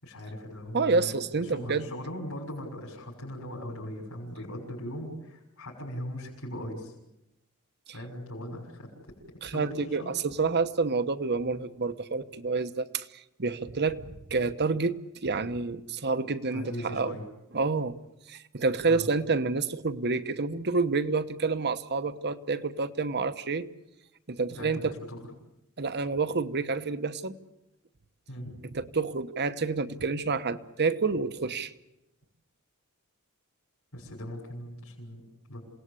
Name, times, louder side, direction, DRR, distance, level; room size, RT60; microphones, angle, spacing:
voice 1, 0.0-1.1 1.4-6.9 7.9-8.9 9.3-10.1 16.5-17.2 18.9-19.1 24.6-24.8 25.1-25.2 28.3-28.5 33.9-35.6, equal, 70° left, -3 dB, 6.3 m, -39 dB
voice 2, 0.7-1.9 9.4-17.2 17.5-18.0 18.3-23.7 24.3-24.9 25.8-27.4 28.7-31.7, right 4 dB, 50° right, 12 dB, 1.1 m, -28 dB
28.0 x 18.0 x 8.3 m, 0.89 s
head